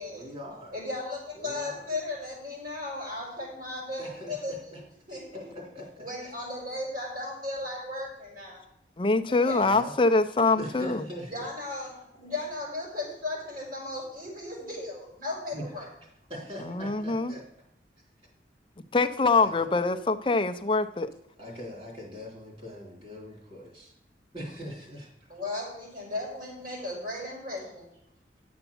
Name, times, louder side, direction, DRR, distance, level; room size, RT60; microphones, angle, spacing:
voice 1, 0.1-0.8 1.3-1.9 4.0-4.8 5.5-6.3 9.3-9.9 10.6-11.5 15.5-15.6 16.0-17.4 19.4-19.5 21.4-23.9 24.3-25.1, equal, 35° right, -1 dB, 3.6 m, -42 dB
voice 2, 0.7-4.5 5.1-5.2 6.0-8.6 9.5-9.6 11.3-15.9 25.3-27.9, left 2 dB, 55° right, -5 dB, 5.4 m, -36 dB
voice 3, 9.0-11.0 16.6-17.3 18.9-21.1, left 3 dB, 30° left, 8 dB, 0.6 m, -24 dB
10.5 x 7.0 x 7.1 m, 0.78 s
head